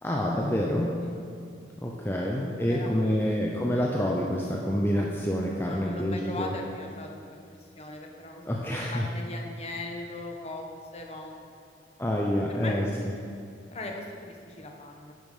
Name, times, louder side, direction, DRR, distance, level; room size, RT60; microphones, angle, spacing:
voice 1, 0.0-1.0 1.8-6.5 8.5-9.1 12.0-12.9, equal, 10° left, -2 dB, 0.7 m, -27 dB
voice 2, 2.6-3.4 5.7-7.4 7.8-8.4 8.9-10.6 10.9-11.5 12.5-12.7 13.7-15.1, left 2 dB, 35° left, 1 dB, 1.0 m, -39 dB
10.5 x 7.3 x 5.5 m, 2.4 s
head